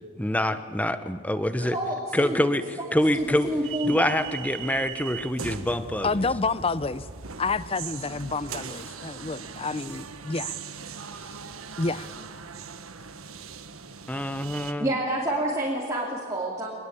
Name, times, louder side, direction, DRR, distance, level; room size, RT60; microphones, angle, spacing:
voice 1, 0.1-1.8 2.1-3.5 3.8-6.1 14.1-14.9, left 1 dB, 5° left, 0.9 m, -26 dB
voice 2, 1.6-2.4 2.8-2.9 3.1-4.2 14.8-16.7, right 1 dB, 15° right, 2.8 m, -28 dB
sound 1, 3.0-14.7, right 6 dB, 90° right, 1.5 m, -40 dB
voice 3, 6.0-7.1 7.4-10.6 11.8-12.1, left 3 dB, 25° left, 0.6 m, -29 dB
24.5 x 20.5 x 8.7 m
head